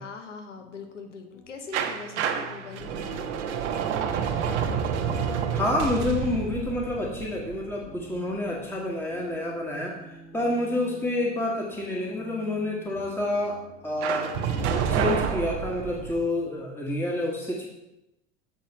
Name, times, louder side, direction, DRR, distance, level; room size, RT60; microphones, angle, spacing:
voice 1, 0.0-3.3, left 4 dB, 90° left, 5 dB, 0.9 m, -42 dB
sound 1, 0.6-16.5, left 1 dB, 75° left, 2.7 m, -50 dB
sound 2, 1.7-8.5 14.0-16.2, right 7 dB, 70° right, 1.0 m, -29 dB
voice 2, 5.5-14.3 14.7-17.7, left 2 dB, 5° left, -2 dB, 1.5 m, -28 dB
7.9 x 4.3 x 5.5 m, 0.90 s
hypercardioid pair, 75°, 35 cm